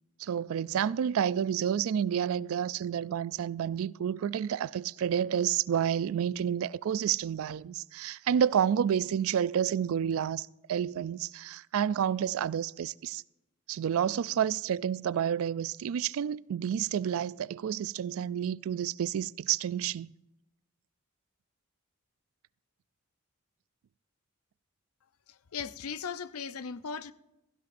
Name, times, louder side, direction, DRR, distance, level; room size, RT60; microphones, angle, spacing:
voice 1, 0.2-13.2 13.7-20.1, right 8 dB, 65° right, 0.3 m, -30 dB
voice 2, 25.5-27.1, left 6 dB, 75° left, 0.5 m, -37 dB
16.5 x 15.5 x 2.6 m
head